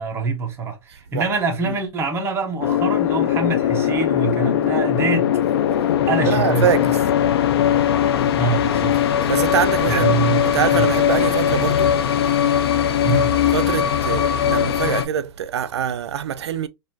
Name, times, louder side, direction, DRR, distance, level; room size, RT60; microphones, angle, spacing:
voice 1, 0.0-5.3 6.1-6.8 8.3-9.0 9.8-10.9 13.0-13.3, right 4 dB, 20° right, 1.0 m, -24 dB
sound 1, 2.6-15.1, left 9 dB, 70° left, 0.6 m, -20 dB
voice 2, 6.2-7.0 9.2-10.2 10.4-12.0 13.5-16.7, right 9 dB, 85° right, 0.5 m, -24 dB
4.2 x 2.6 x 2.6 m
hypercardioid pair, 140°, 14 cm